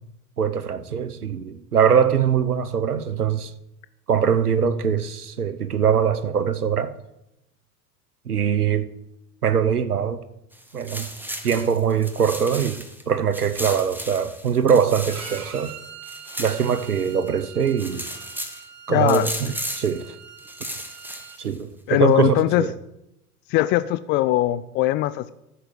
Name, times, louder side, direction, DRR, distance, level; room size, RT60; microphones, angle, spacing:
voice 1, 0.4-3.5 4.1-6.9 8.3-8.9 9.4-10.2 10.7-11.1 11.4-15.7 16.4-18.0 18.9-20.1 21.4-22.7, right 7 dB, 85° right, 0.9 m, -22 dB
sound 1, 10.5-13.0 13.3-17.3 17.6-18.6 19.1-20.0 20.4-21.5, equal, 5° right, 1.6 m, -35 dB
Bowed string instrument, 15.1-21.4, right 7 dB, 60° right, 2.1 m, -43 dB
voice 2, 18.9-19.3 21.9-22.6 23.5-25.3, left 16 dB, 25° left, 0.3 m, -20 dB
13.0 x 6.8 x 7.9 m
figure-of-eight pair, 80°, 44 cm